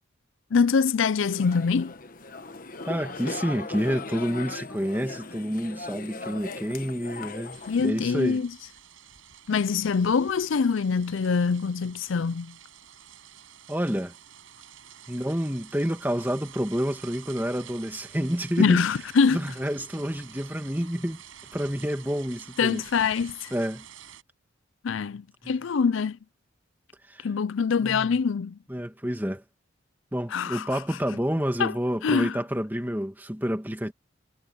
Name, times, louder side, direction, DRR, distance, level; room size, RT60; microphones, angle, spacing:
voice 1, 0.5-1.9 7.7-8.5 9.5-12.5 18.6-19.4 22.6-23.5 24.8-26.2 27.2-28.6 30.3-30.8 31.6-31.7 32.0-32.4, left 5 dB, 75° left, 0.5 m, -24 dB
sound 1, 1.2-7.9, left 3 dB, 45° left, 1.2 m, -38 dB
voice 2, 2.8-8.4 13.7-14.1 15.1-18.8 19.3-21.2 21.5-22.8 23.5-23.8 25.4-25.5 27.1-27.3 27.8-28.2 28.7-29.4 30.1-33.9, equal, 10° right, 2.2 m, -29 dB
sound 2, 7.5-24.2, right 8 dB, 90° right, 6.1 m, -49 dB
head